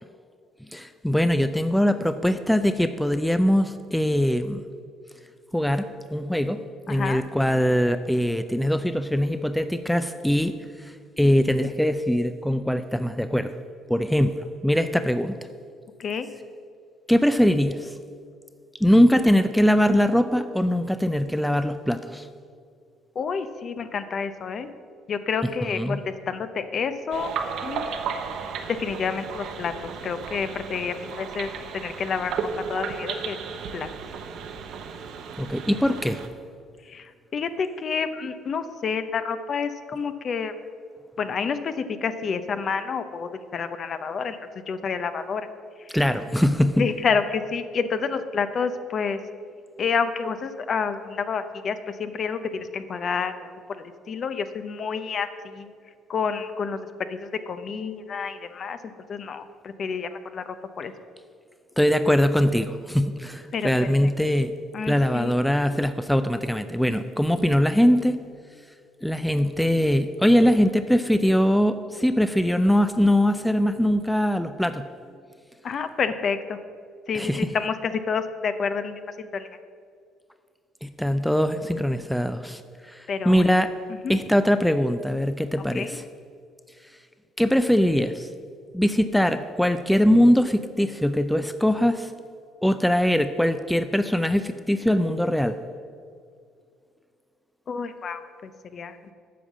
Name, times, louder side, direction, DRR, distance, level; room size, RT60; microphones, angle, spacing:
voice 1, 0.7-4.6 5.5-6.6 6.9-13.6 13.9-15.4 17.1-18.0 18.8-22.3 25.8-26.0 35.4-36.2 45.9-46.9 61.8-64.6 64.9-68.2 69.0-74.9 77.1-77.4 80.8-83.7 84.1-85.9 87.4-88.3 88.7-92.1 92.6-95.6, equal, ahead, 10 dB, 0.4 m, -22 dB
voice 2, 6.9-7.2 16.0-16.3 23.1-24.7 25.1-27.3 27.6-28.1 28.7-32.4 32.7-33.4 33.7-33.9 36.8-40.5 41.2-45.5 45.8-45.9 46.8-49.2 49.8-58.8 59.1-60.9 63.5-63.9 64.7-65.4 75.6-76.6 77.1-79.5 83.1-83.5 83.9-84.2 85.6-86.0 97.7-99.1, left 5 dB, 45° left, 11 dB, 0.6 m, -29 dB
sound 1, 27.1-36.3, right 6 dB, 65° right, 0.8 m, -34 dB
8.6 x 5.5 x 7.3 m, 2.2 s
cardioid pair, 95°, 0 cm